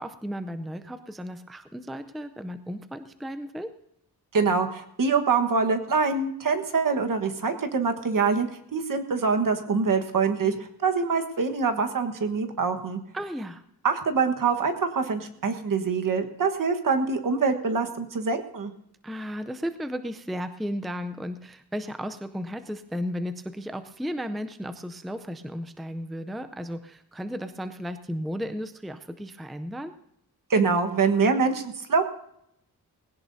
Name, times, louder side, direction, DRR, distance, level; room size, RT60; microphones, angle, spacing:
voice 1, 0.0-3.7 13.1-13.6 19.0-29.9, equal, ahead, 9 dB, 0.5 m, -34 dB
voice 2, 4.3-8.5 8.7-10.6 10.8-13.0 13.8-18.7 30.5-32.0, right 5 dB, 55° right, 5 dB, 1.4 m, -24 dB
19.5 x 17.0 x 2.7 m, 0.76 s
wide cardioid pair, 150°, 38 cm